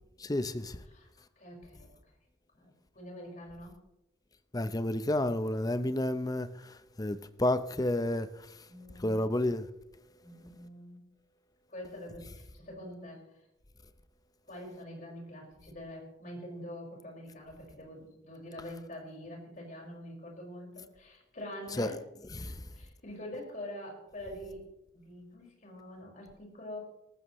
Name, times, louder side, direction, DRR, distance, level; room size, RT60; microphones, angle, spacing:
voice 1, 0.2-0.8 4.5-8.3 9.0-9.7 21.8-21.9 22.4-22.6, left 1 dB, 20° left, 0.7 m, -30 dB
voice 2, 1.4-2.0 2.5-3.7 8.7-9.3 10.2-11.0 11.7-13.4 14.5-22.0 22.4-24.7 25.0-26.8, left 1 dB, 45° left, 5.2 m, -45 dB
19.0 x 14.5 x 3.1 m
head